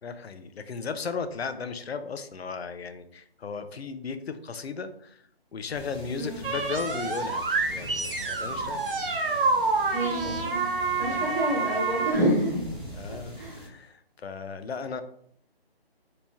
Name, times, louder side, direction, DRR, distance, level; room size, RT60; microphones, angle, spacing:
voice 1, 0.0-8.8 11.0-11.4 12.9-15.0, left 5 dB, 80° left, 10 dB, 0.6 m, -36 dB
sound 1, 5.7-13.7, equal, ahead, 0.5 m, -43 dB
sound 2, 6.4-12.1, right 3 dB, 60° right, 0.7 m, -28 dB
voice 2, 9.9-10.6 11.0-12.7 13.1-13.6, right 1 dB, 15° right, -9 dB, 1.0 m, -28 dB
3.0 x 2.9 x 3.4 m, 0.66 s
hypercardioid pair, 175°, 31 cm